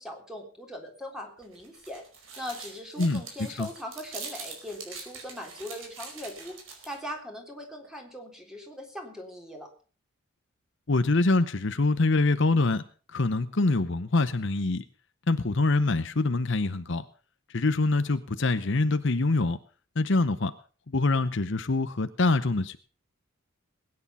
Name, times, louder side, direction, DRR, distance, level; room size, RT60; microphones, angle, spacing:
voice 1, 0.0-2.0 2.4-6.5 6.8-9.7, equal, 5° right, 2 dB, 3.6 m, -40 dB
sound 1, 1.4-7.1, right 4 dB, 65° right, 4.9 m, -44 dB
voice 2, 10.9-12.8 13.1-14.8 15.3-17.0 17.5-19.6 20.0-20.5 20.9-22.8, left 3 dB, 60° left, 11 dB, 0.8 m, -25 dB
20.5 x 9.8 x 5.6 m, 0.39 s
head